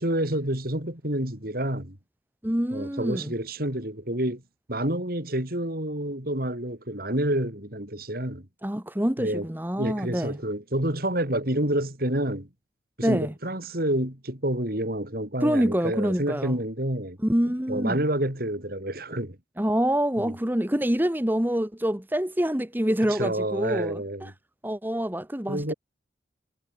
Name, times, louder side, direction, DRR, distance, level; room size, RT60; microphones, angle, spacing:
voice 1, 0.0-2.0 2.7-4.4 4.7-8.5 9.2-9.5 9.8-12.5 13.0-17.2 17.7-19.4 20.2-20.3 23.1-24.3 25.5-25.7, right 1 dB, 55° right, 5.3 m, -28 dB
voice 2, 2.4-3.3 8.6-10.4 13.0-13.3 15.4-16.6 17.2-18.0 19.6-24.3 24.6-25.7, equal, 10° right, 1.3 m, -26 dB
head